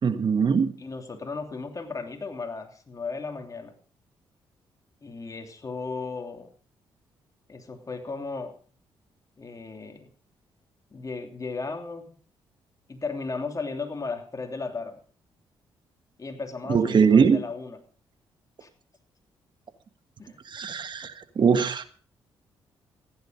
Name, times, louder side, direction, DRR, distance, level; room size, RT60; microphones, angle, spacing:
voice 1, 0.0-0.8 16.7-17.4 20.5-21.8, right 6 dB, 50° right, 10 dB, 1.5 m, -21 dB
voice 2, 0.8-3.7 5.0-6.5 7.5-8.6 9.4-10.1 10.9-12.1 12.9-15.0 16.2-17.8 18.6-18.7 20.2-20.4, left 4 dB, 35° left, 4 dB, 3.0 m, -35 dB
15.0 x 10.5 x 5.2 m, 0.43 s
supercardioid pair, 60°, 10 cm